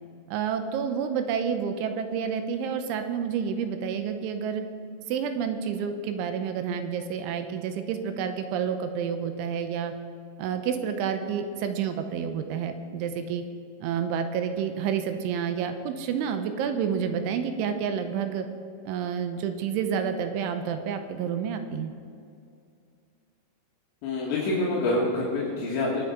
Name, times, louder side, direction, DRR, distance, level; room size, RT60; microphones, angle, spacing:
voice 1, 0.3-4.6 5.1-9.9 10.4-13.4 13.8-18.5 18.9-21.9, right 7 dB, 85° right, 8 dB, 3.1 m, -29 dB
voice 2, 24.0-26.0, left 2 dB, 70° left, -6 dB, 3.9 m, -26 dB
22.5 x 8.1 x 5.3 m, 2.5 s
omnidirectional pair, 5.7 m